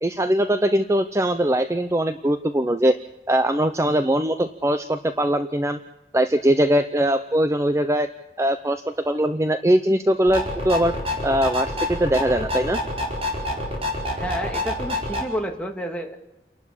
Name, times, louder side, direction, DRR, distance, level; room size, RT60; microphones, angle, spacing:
voice 1, 0.0-3.0 3.3-5.8 6.1-8.1 8.4-10.9 11.2-12.8, right 1 dB, 15° right, 9 dB, 0.7 m, -21 dB
sound 1, 10.3-15.2, left 1 dB, 35° right, 4.9 m, -27 dB
voice 2, 14.1-16.2, equal, 5° left, 2 dB, 2.2 m, -30 dB
29.5 x 12.0 x 8.6 m, 0.93 s
head